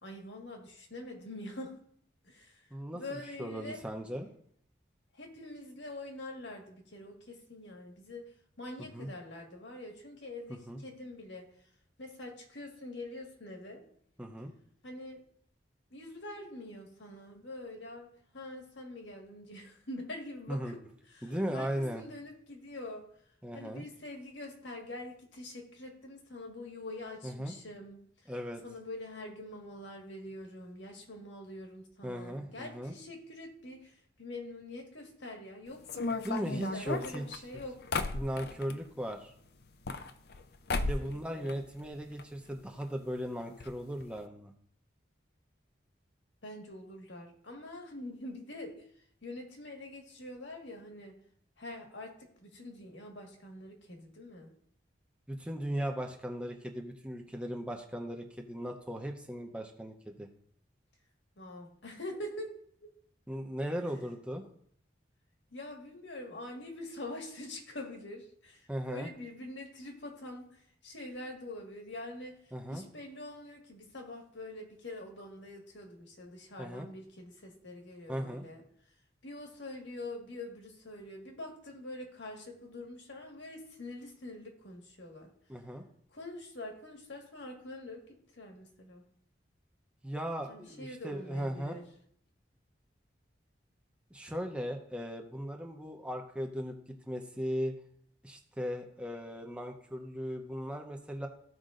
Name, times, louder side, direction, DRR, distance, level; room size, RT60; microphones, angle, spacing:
voice 1, 0.0-1.8 2.2-2.6 2.9-3.8 5.1-8.2 8.6-11.5 12.0-13.8 14.8-15.2 15.9-18.1 18.3-20.8 21.1-23.1 23.5-28.3 28.6-36.0 36.5-37.8 41.0-41.5 46.4-48.7 49.2-51.1 51.6-54.5 61.4-62.5 62.8-62.9 65.5-72.4 72.7-78.6 79.2-85.3 86.1-88.0 88.4-89.0 90.5-91.8, left 1 dB, 80° left, 2 dB, 1.7 m, -45 dB
voice 2, 2.7-4.3 8.9-9.1 10.5-10.8 14.2-14.5 20.5-20.8 21.2-22.0 23.4-23.8 27.2-27.5 28.3-28.6 32.0-32.9 36.2-37.4 38.1-39.3 40.8-44.5 55.3-60.3 63.3-64.5 68.7-69.1 72.5-72.8 76.6-76.9 78.1-78.4 85.5-85.8 90.0-91.8 94.1-96.8 97.1-97.7 98.2-101.3, equal, 5° right, 2 dB, 0.8 m, -37 dB
sound 1, 35.9-38.8 39.6-40.4 40.7-41.2 41.5-42.3 42.5-42.6 42.8-42.9 43.6-43.7 44.0-44.2, left 3 dB, 60° left, 0.5 m, -35 dB
15.0 x 5.1 x 2.6 m, 0.64 s
head